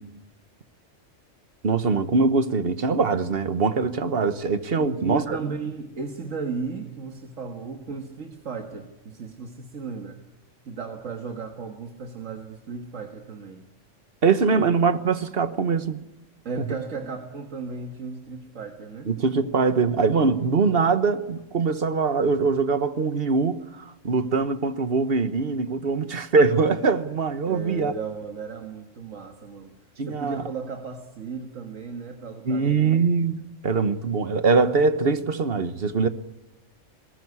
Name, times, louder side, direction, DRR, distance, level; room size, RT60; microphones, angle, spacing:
voice 1, 1.6-5.4 14.2-16.0 16.7-16.8 19.1-27.9 30.0-30.4 32.5-33.4 33.6-36.1, right 4 dB, 50° right, 1.3 m, -22 dB
voice 2, 4.8-10.2 10.7-13.7 14.5-14.6 16.4-19.1 27.5-29.8 30.1-33.0, right 4 dB, 90° right, 2.0 m, -35 dB
21.5 x 18.5 x 9.6 m
omnidirectional pair, 1.3 m